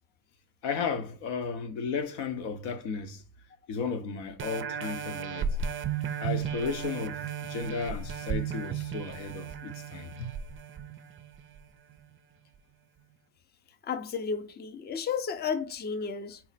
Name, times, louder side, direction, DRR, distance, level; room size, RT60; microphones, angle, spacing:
voice 1, 0.6-3.2 3.7-5.5 6.2-10.3, left 5 dB, 70° left, 0.8 m, -34 dB
sound 1, 4.4-11.6 12.1-12.2, right 7 dB, 30° right, 0.4 m, -35 dB
voice 2, 13.8-16.4, left 6 dB, 25° left, 0.5 m, -33 dB
4.3 x 2.0 x 4.0 m
supercardioid pair, 80°, 43 cm